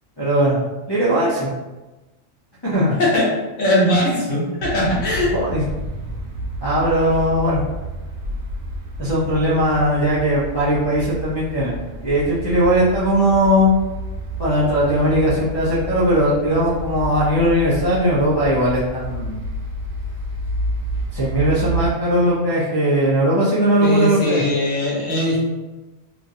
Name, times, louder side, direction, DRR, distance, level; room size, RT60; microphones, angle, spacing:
voice 1, 0.2-0.6 0.9-1.5 2.6-2.9 5.3-5.6 6.6-7.6 9.0-11.7 12.0-13.7 14.4-19.4 21.1-24.4, equal, 35° left, -8 dB, 0.4 m, -19 dB
voice 2, 3.6-5.3 23.8-25.4, left 1 dB, 75° left, -5 dB, 1.1 m, -20 dB
sound 1, 4.6-21.9, right 1 dB, 90° right, 1.1 m, -30 dB
2.9 x 2.5 x 2.6 m, 1.1 s
omnidirectional pair, 1.4 m